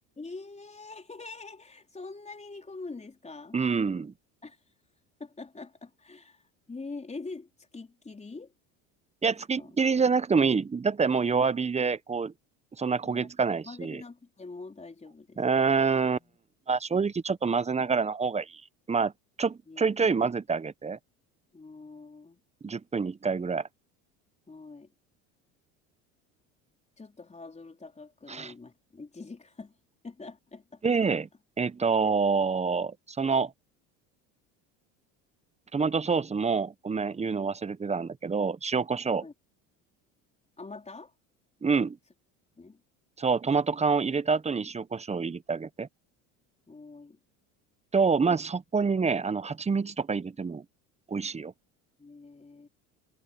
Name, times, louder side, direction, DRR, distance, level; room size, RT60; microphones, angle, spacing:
voice 1, 0.2-3.6 4.4-4.6 5.2-8.5 9.2-9.8 13.0-13.3 13.6-15.4 16.0-16.3 19.7-20.3 21.5-22.4 24.5-24.9 27.0-29.7 30.0-30.8 31.1-31.2 39.2-39.3 40.6-41.1 42.6-42.8 46.7-47.2 52.0-52.7, left 3 dB, 15° left, 4.1 m, -44 dB
voice 2, 3.5-4.1 9.2-12.3 12.8-14.0 15.4-16.2 16.7-18.6 18.9-19.1 19.4-21.0 22.6-23.7 28.3-28.5 30.8-31.3 31.6-33.5 35.7-39.3 41.6-42.0 43.2-45.9 47.9-50.6 51.1-51.5, right 5 dB, 15° right, 1.0 m, -27 dB
hypercardioid pair, 85°, 38 cm